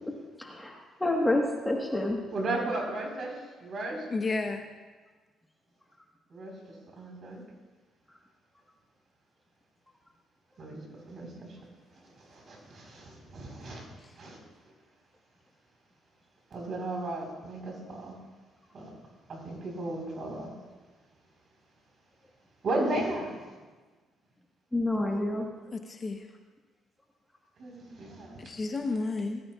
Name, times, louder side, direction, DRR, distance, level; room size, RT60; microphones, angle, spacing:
voice 1, 0.4-2.2 24.7-25.5, left 1 dB, 10° left, 0 dB, 1.4 m, -28 dB
voice 2, 2.3-4.0 6.3-7.4 10.6-10.8 11.1-11.6 12.0-13.9 14.2-14.4 16.5-18.1 18.7-18.9 19.3-20.5 22.6-23.5 27.6-28.5, right 2 dB, 50° right, 0 dB, 4.3 m, -35 dB
voice 3, 4.1-4.6 25.7-26.2 28.4-29.4, left 3 dB, 30° left, 4 dB, 0.9 m, -31 dB
18.0 x 13.5 x 2.4 m, 1.3 s
cardioid pair, 115°, 0 cm